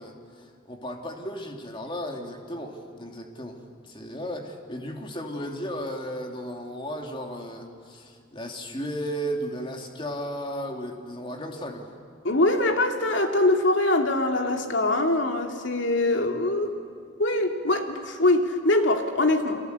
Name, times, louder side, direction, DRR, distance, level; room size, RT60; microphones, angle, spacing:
voice 1, 0.0-11.9, equal, 25° left, 2 dB, 2.7 m, -35 dB
voice 2, 12.2-16.7 17.2-19.6, left 2 dB, 65° left, 3 dB, 2.6 m, -23 dB
30.0 x 23.5 x 8.2 m, 2.2 s
head